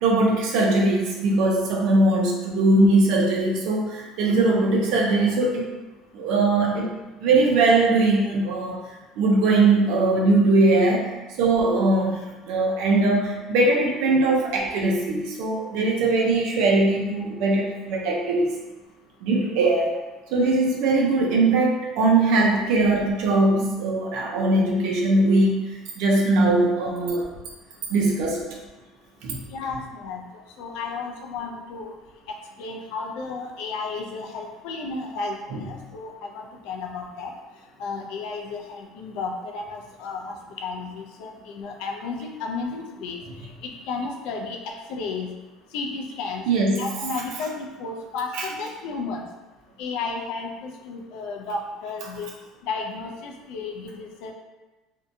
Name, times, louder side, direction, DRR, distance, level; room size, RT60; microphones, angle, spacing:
voice 1, 0.0-5.7 6.1-6.9 7.2-8.8 9.2-11.1 11.4-18.6 19.2-20.0 20.3-27.2 27.9-28.4 29.2-29.4 46.5-46.9 48.3-48.4, right 2 dB, 70° right, 0 dB, 0.5 m, -20 dB
voice 2, 29.5-30.2 30.6-31.9 32.3-37.3 37.8-43.2 43.6-45.3 45.7-46.4 46.8-49.2 49.8-52.4 52.6-54.3, left 4 dB, 75° left, 2 dB, 0.4 m, -33 dB
2.6 x 2.2 x 2.6 m, 1.1 s
cardioid pair, 145°, 0 cm